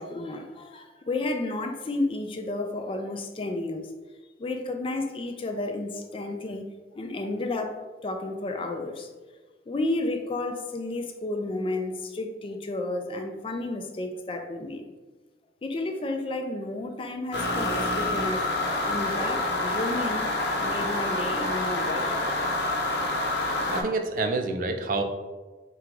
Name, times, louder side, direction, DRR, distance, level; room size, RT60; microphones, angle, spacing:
voice 1, 0.0-3.9 4.4-6.6 7.0-9.1 9.7-14.8 15.6-18.5 18.8-20.2 20.6-22.3, left 2 dB, 30° left, 0.3 m, -32 dB
sound 1, 17.3-23.8, left 2 dB, 70° left, 0.8 m, -27 dB
voice 2, 23.7-25.0, right 3 dB, 50° right, 0.4 m, -27 dB
3.8 x 2.4 x 4.5 m
head